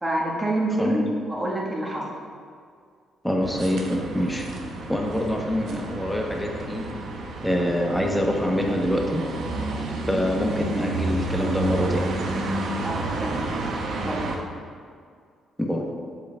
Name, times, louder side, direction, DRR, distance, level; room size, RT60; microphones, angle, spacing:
voice 1, 0.0-2.1 12.8-13.5 14.0-14.4, right 1 dB, 15° right, -4 dB, 1.6 m, -27 dB
voice 2, 3.2-4.4 4.9-6.8 7.4-9.2 10.1-12.1 15.6-15.8, equal, 5° left, 0 dB, 1.0 m, -25 dB
sound 1, 3.4-14.4, right 2 dB, 75° right, 0.8 m, -31 dB
7.7 x 7.2 x 2.4 m, 2.1 s
cardioid pair, 90°, 0 cm